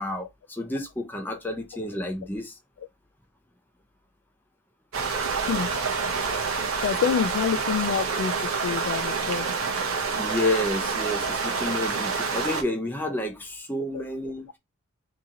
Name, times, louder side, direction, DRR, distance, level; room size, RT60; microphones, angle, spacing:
voice 1, 0.0-2.5 10.2-14.5, left 1 dB, 10° left, 0.6 m, -30 dB
sound 1, 4.9-12.6, right 5 dB, 70° right, 0.7 m, -27 dB
voice 2, 6.8-8.3 8.6-9.5 13.9-14.0, left 7 dB, 70° left, 0.3 m, -26 dB
2.8 x 2.8 x 3.7 m
head